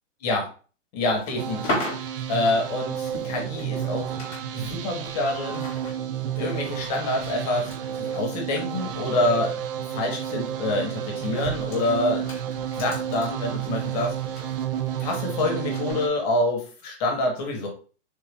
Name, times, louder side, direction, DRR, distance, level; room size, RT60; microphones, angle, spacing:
voice 1, 0.9-1.8 2.3-4.1 4.5-5.6 6.4-9.5 9.9-12.3 12.7-14.1 15.0-17.7, left 2 dB, 30° left, 1 dB, 1.3 m, -26 dB
sound 1, 1.0-4.4 4.6-9.6 9.9-10.2 10.9-15.2 15.7-15.9, left 1 dB, 15° left, 1.5 m, -38 dB
sound 2, 1.4-16.1, right 9 dB, 50° right, 0.5 m, -31 dB
4.0 x 2.7 x 3.5 m, 0.38 s
hypercardioid pair, 170°, 37 cm